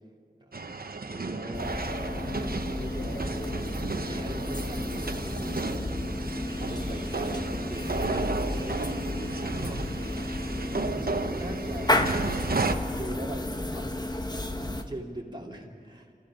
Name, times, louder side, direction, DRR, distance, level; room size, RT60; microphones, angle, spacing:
sound 1, 0.5-12.8, right 3 dB, 70° right, 1.0 m, -33 dB
voice 1, 1.1-6.3 6.6-9.8 10.5-12.3 13.0-16.1, right 1 dB, 30° right, -2 dB, 3.1 m, -41 dB
sound 2, 1.5-14.8, left 1 dB, 25° left, 1.2 m, -32 dB
29.0 x 14.5 x 6.3 m, 2.2 s
wide cardioid pair, 45°, 16 cm